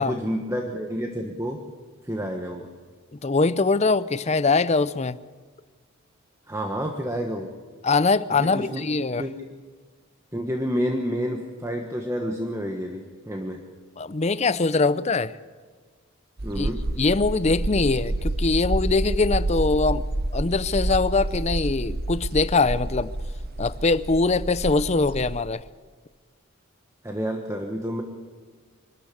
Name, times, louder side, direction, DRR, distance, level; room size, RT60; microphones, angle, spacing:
voice 1, 0.0-1.6 2.0-2.7 6.5-7.5 8.4-8.8 9.2-9.3 10.3-13.6 16.4-16.8 27.0-28.0, equal, 15° right, 3 dB, 1.2 m, -29 dB
voice 2, 3.2-5.2 7.8-9.2 14.0-15.3 16.5-16.7 17.0-20.0 20.3-23.1 23.6-25.6, left 3 dB, 30° left, 16 dB, 0.5 m, -22 dB
sound 1, 16.4-25.4, right 1 dB, 45° right, 0.9 m, -29 dB
24.5 x 13.0 x 8.5 m, 1.5 s
head